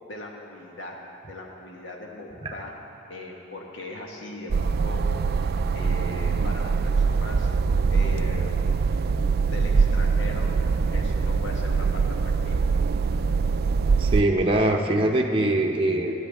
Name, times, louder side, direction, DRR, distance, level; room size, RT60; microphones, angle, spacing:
voice 1, 0.1-0.9 1.3-2.8 3.1-5.1 5.4-7.5 7.9-8.6 9.4-10.5 10.9-12.6, left 2 dB, 90° left, 0 dB, 1.5 m, -39 dB
sound 1, 4.5-14.2, right 5 dB, 55° right, 0.3 m, -23 dB
voice 2, 14.0-16.1, right 1 dB, 30° right, 1 dB, 0.7 m, -22 dB
21.0 x 8.3 x 3.5 m, 3.0 s
head